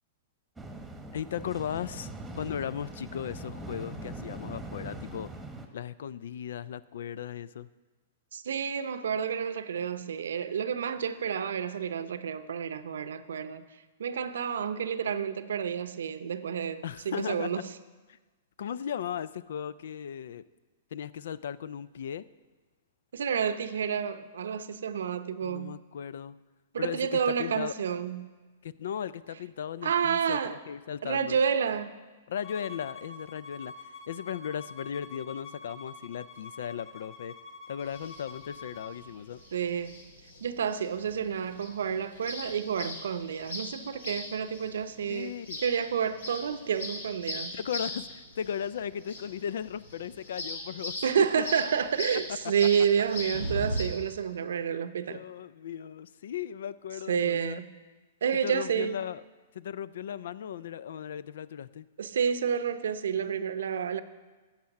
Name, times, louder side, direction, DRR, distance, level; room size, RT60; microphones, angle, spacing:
sound 1, 0.6-5.7, right 1 dB, 5° right, 1.2 m, -42 dB
voice 1, 1.1-2.1 2.3-5.3 5.7-7.7 16.8-17.6 18.1-18.2 18.6-20.4 20.9-22.3 25.4-26.4 26.8-27.7 28.6-31.4 32.3-37.3 37.7-39.4 45.1-45.6 47.5-51.0 51.4-51.5 55.1-57.6 58.4-59.2 59.5-61.9, left 9 dB, 70° left, 18 dB, 0.4 m, -37 dB
voice 2, 8.3-13.7 14.0-17.6 23.1-25.8 26.7-28.3 29.8-30.6 31.0-32.0 39.5-40.1 40.4-47.6 51.0-55.2 57.1-57.7 58.2-59.0 62.0-64.0, right 7 dB, 75° right, 12 dB, 0.7 m, -30 dB
Bowed string instrument, 32.4-39.0, left 4 dB, 35° left, 1.0 m, -46 dB
sound 2, 37.8-53.8, left 1 dB, 85° left, 2.7 m, -40 dB
10.5 x 7.3 x 6.5 m, 1.3 s
hypercardioid pair, 120°, 0 cm